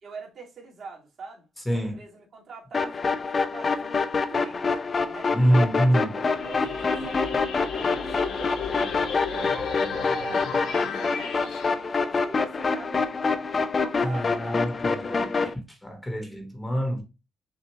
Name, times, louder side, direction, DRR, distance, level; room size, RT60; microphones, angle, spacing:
voice 1, 0.0-4.8 5.0-5.3 5.7-7.5 8.0-13.1 13.8-14.6 14.9-15.6, right 4 dB, 60° right, 2.2 m, -44 dB
sound 1, 2.7-15.5, left 4 dB, 35° left, 0.6 m, -26 dB
voice 2, 5.3-6.1 14.0-15.5 15.8-17.0, equal, 10° left, 1.3 m, -25 dB
sound 2, 6.2-11.7, left 5 dB, 80° left, 1.2 m, -34 dB
6.2 x 2.7 x 3.1 m
cardioid pair, 90°, 0 cm